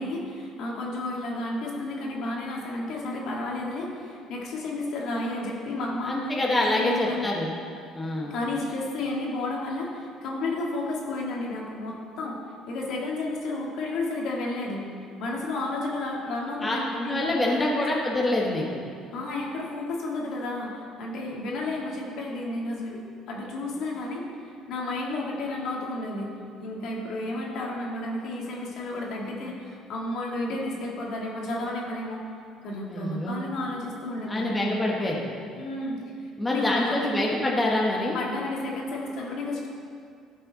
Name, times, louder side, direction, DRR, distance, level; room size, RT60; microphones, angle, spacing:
voice 1, 0.0-7.3 8.3-12.4 12.7-14.8 15.2-17.8 19.1-23.0 23.3-26.3 26.6-32.2 32.6-34.6 35.6-37.2 38.1-39.7, left 2 dB, 65° left, -2 dB, 2.0 m, -32 dB
voice 2, 6.0-7.5 7.9-8.3 16.6-16.7 17.0-18.8 32.9-33.4 34.3-35.2 36.4-38.2, left 1 dB, 15° left, -3 dB, 1.2 m, -26 dB
14.0 x 5.4 x 4.1 m, 2.3 s
cardioid pair, 120°, 0 cm